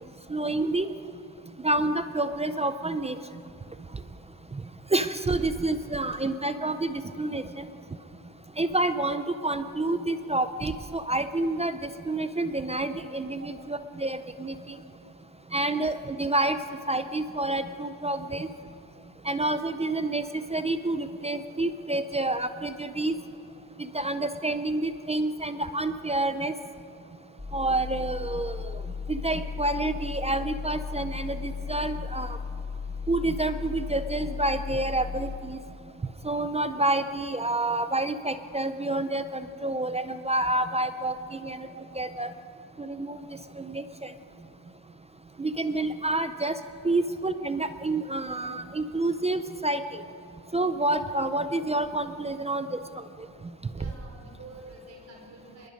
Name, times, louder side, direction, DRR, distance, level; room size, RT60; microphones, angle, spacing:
voice 1, 0.3-0.9 1.6-3.2 4.9-7.7 8.6-14.6 15.5-16.6 16.9-18.5 19.3-23.1 23.8-26.5 27.5-28.8 29.1-32.4 33.1-35.6 36.2-41.7 42.0-42.3 42.8-43.2 43.6-44.1 45.4-46.5 46.8-50.0 50.5-52.8, right 2 dB, 15° right, 10 dB, 0.4 m, -28 dB
sound 1, 27.4-35.4, left 6 dB, 10° left, 2.5 m, -35 dB
voice 2, 53.7-55.7, right 2 dB, 35° right, 0 dB, 5.0 m, -47 dB
25.0 x 21.5 x 5.1 m, 2.6 s
cardioid pair, 160°, 47 cm